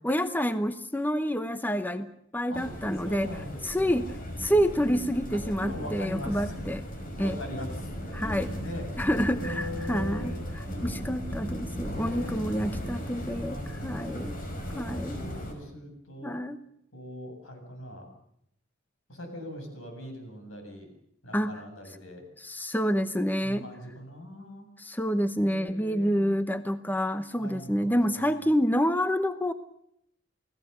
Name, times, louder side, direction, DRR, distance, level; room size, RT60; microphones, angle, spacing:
voice 1, 0.0-2.1 2.3-3.3 3.6-4.0 4.4-6.8 7.2-7.4 8.1-8.5 9.0-14.4 14.8-15.2 16.2-16.6 21.3-21.5 22.4-23.7 24.8-29.5, equal, 10° left, 10 dB, 0.9 m, -28 dB
sound 1, 2.5-15.5, equal, 45° left, 5.5 m, -36 dB
voice 2, 3.0-4.1 5.3-6.6 7.2-9.1 9.4-11.5 11.9-12.4 13.5-14.3 14.7-16.4 16.9-18.1 19.1-20.9 21.2-22.2 23.4-24.7 25.3-26.3 27.4-28.5, left 1 dB, 90° left, 4 dB, 7.5 m, -41 dB
29.5 x 18.0 x 6.9 m, 0.73 s
head